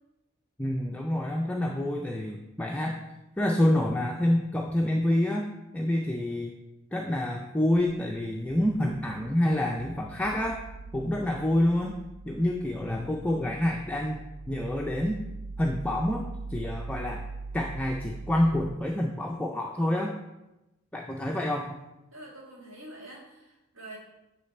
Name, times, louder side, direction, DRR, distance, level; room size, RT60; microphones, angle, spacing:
voice 1, 0.6-3.0 3.4-5.5 5.7-6.5 6.9-10.6 10.9-12.0 12.3-14.2 14.5-15.2 15.6-16.2 16.5-17.2 17.5-20.1 20.9-21.7, left 1 dB, 5° left, 0 dB, 0.4 m, -27 dB
sound 1, 7.8-18.8, right 3 dB, 85° right, 0.4 m, -42 dB
voice 2, 22.1-24.0, right 1 dB, 65° right, -2 dB, 1.9 m, -46 dB
9.7 x 3.3 x 4.3 m, 0.98 s
head